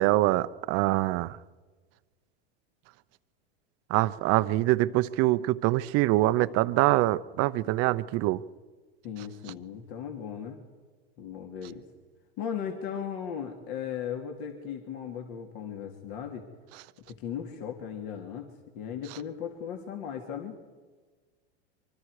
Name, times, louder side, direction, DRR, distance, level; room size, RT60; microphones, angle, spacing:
voice 1, 0.0-1.4 3.9-8.4, right 17 dB, 45° right, 15 dB, 0.8 m, -24 dB
voice 2, 9.0-10.6 11.2-11.8 12.4-16.5 17.1-20.6, left 8 dB, 55° left, 3 dB, 2.8 m, -37 dB
24.5 x 24.5 x 5.0 m, 1.4 s
hypercardioid pair, 115°, 33 cm